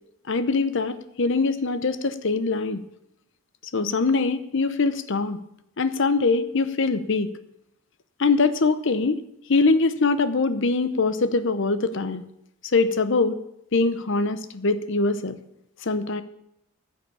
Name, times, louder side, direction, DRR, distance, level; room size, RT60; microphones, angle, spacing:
voice 1, 0.3-2.8 3.7-5.4 5.8-7.3 8.2-9.2 9.5-12.2 12.7-13.4 13.7-15.4 15.8-16.2, left 3 dB, 55° left, 12 dB, 0.8 m, -23 dB
10.0 x 6.7 x 8.5 m, 0.79 s
head